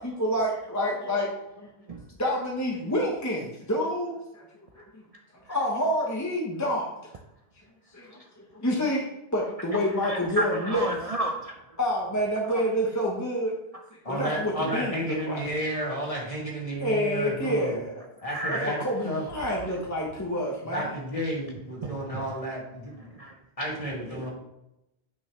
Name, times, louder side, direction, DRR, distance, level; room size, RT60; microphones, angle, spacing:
voice 1, 0.0-1.7 2.1-4.5 4.7-5.0 5.5-6.9 7.9-9.0 9.3-10.9 11.8-13.5 14.1-15.4 16.8-18.1 18.5-21.0, equal, 15° left, -2 dB, 1.1 m, -28 dB
voice 2, 10.0-11.5 18.3-18.7 21.8-22.2 23.2-23.3, right 2 dB, 45° right, 3 dB, 0.5 m, -31 dB
voice 3, 14.0-17.8 18.2-19.2 20.6-23.0 23.6-24.3, right 1 dB, 35° left, -3 dB, 2.1 m, -32 dB
8.7 x 5.5 x 3.1 m, 0.87 s
omnidirectional pair, 1.0 m